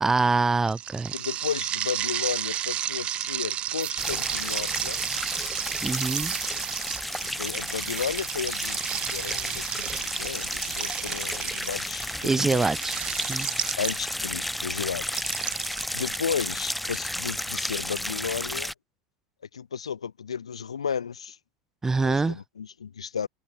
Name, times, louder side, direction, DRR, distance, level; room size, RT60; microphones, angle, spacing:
voice 1, 0.0-1.1 5.8-6.3 12.2-12.9 13.3-13.5 21.8-22.4, right 3 dB, 15° right, 1.4 m, -24 dB
sound 1, 0.7-14.3 15.1-17.0, right 12 dB, 35° right, 0.7 m, -33 dB
voice 2, 1.1-5.0 7.4-12.7 13.8-15.2 15.9-18.7 19.5-21.4 22.0-23.3, left 7 dB, 80° left, 3.1 m, -33 dB
sound 2, 3.4-3.5 3.8-4.1 5.0-11.1, right 17 dB, 60° right, 3.6 m, -44 dB
sound 3, 4.0-18.7, left 1 dB, ahead, 0.9 m, -32 dB
figure-of-eight pair, 80°, 3 cm